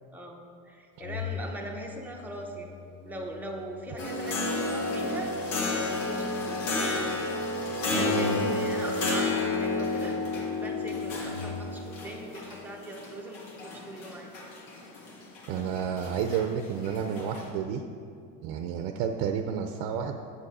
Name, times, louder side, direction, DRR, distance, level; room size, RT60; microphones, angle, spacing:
voice 1, 0.7-2.8 3.0-6.6 7.9-10.2 10.6-14.3 14.8-14.9 15.5-15.7, right 1 dB, 5° right, 0 dB, 0.7 m, -40 dB
Organ, 1.0-12.0, left 7 dB, 40° left, 0.9 m, -44 dB
sound 1, 4.0-17.5, left 3 dB, 75° left, 1.9 m, -31 dB
voice 2, 7.9-8.5 15.5-17.8 18.4-20.2, right 7 dB, 70° right, 5 dB, 0.7 m, -30 dB
9.0 x 7.2 x 4.2 m, 2.4 s
cardioid pair, 155°, 38 cm